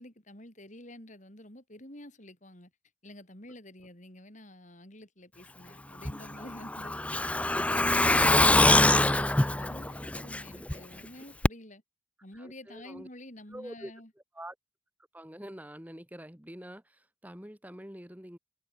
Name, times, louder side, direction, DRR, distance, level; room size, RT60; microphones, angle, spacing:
voice 1, 0.0-2.7 3.0-11.8 12.2-14.1, left 1 dB, 40° left, 5.6 m, -49 dB
Truck, 6.0-10.7 11.0-11.1 11.4-11.5, left 2 dB, 5° left, 0.6 m, -24 dB
voice 2, 12.3-13.1 13.5-13.9 14.3-14.6 15.1-18.4, equal, 10° right, 2.0 m, -45 dB
head